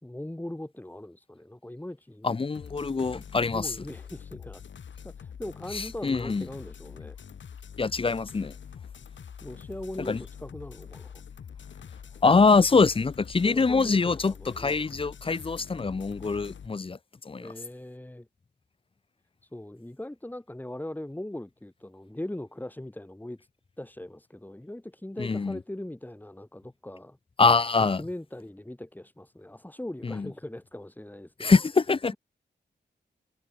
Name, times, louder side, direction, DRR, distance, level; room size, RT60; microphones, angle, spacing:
voice 1, 0.0-2.3 3.1-4.6 5.0-7.2 9.4-11.1 13.4-14.8 17.4-18.3 19.4-23.5 23.8-27.2 27.8-31.5, left 1 dB, 10° left, 4.7 m, -40 dB
voice 2, 2.2-3.7 5.7-6.4 7.8-8.5 10.1-10.2 12.2-17.0 17.2-17.5 25.2-25.6 27.4-28.0 30.0-30.3 31.4-32.1, left 4 dB, 30° left, 0.7 m, -24 dB
sound 1, 2.5-16.7, left 7 dB, 85° left, 3.6 m, -45 dB
wide cardioid pair, 110°, 19 cm